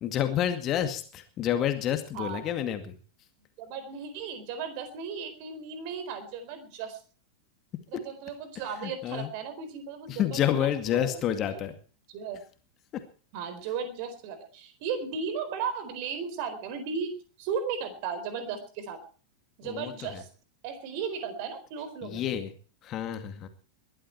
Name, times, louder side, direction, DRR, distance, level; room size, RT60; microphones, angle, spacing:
voice 1, 0.0-3.0 8.8-9.3 10.1-11.8 12.9-13.0 19.6-20.2 22.0-22.5 22.8-23.5, left 10 dB, 35° left, 9 dB, 2.2 m, -29 dB
voice 2, 3.6-7.0 7.9-11.2 11.5-11.6 12.1-12.4 13.3-17.1 17.4-19.0 19.6-20.3 20.6-22.2, right 6 dB, 45° right, 10 dB, 4.2 m, -35 dB
21.0 x 12.5 x 4.6 m, 0.40 s
figure-of-eight pair, 90°, 0 cm